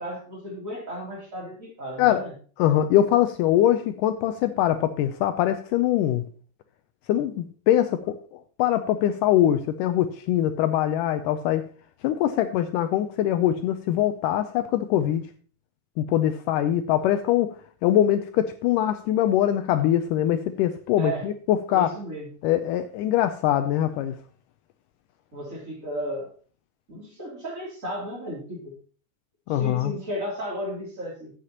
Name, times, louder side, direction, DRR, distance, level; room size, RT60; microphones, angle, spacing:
voice 1, 0.0-2.3 21.0-21.3 21.7-22.3 25.3-26.3 26.9-28.7 29.5-31.3, equal, 25° right, -4 dB, 3.1 m, -34 dB
voice 2, 2.6-6.2 7.1-8.2 8.6-11.6 12.0-15.2 16.0-21.9 22.4-24.2 29.5-29.9, left 11 dB, 80° left, 9 dB, 2.0 m, -23 dB
11.5 x 8.4 x 2.9 m, 0.41 s
omnidirectional pair, 4.1 m